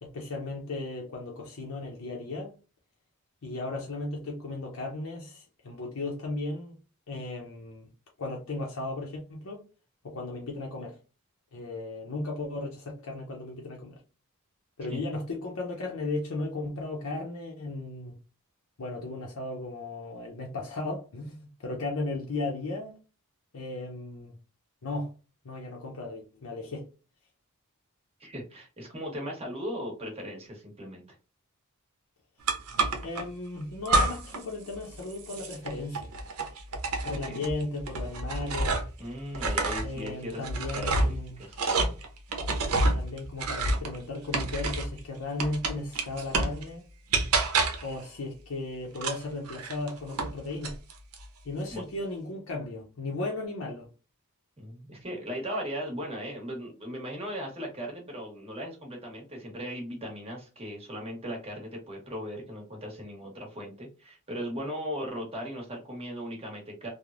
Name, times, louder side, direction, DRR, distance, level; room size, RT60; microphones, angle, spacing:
voice 1, 0.0-2.5 3.4-6.8 7.1-7.9 8.2-9.6 10.0-11.0 11.5-14.0 14.8-18.1 18.8-23.0 23.5-24.3 24.8-25.1 25.4-26.9 33.0-36.1 37.0-38.8 39.8-41.4 42.9-46.9 47.8-50.7 51.4-53.9, left 2 dB, 70° left, 0.6 m, -35 dB
voice 2, 28.2-31.0 37.0-37.5 39.0-40.4 40.7-41.1 41.4-41.6 51.7-51.8 54.6-66.9, equal, 25° right, 1.0 m, -38 dB
sound 1, 32.5-33.2 33.8-34.4 34.7-39.0 39.3-45.0 45.4-46.6 47.1-47.9 48.9-50.3 50.6-51.2, right 3 dB, 90° right, 0.7 m, -29 dB
3.2 x 2.0 x 2.4 m
head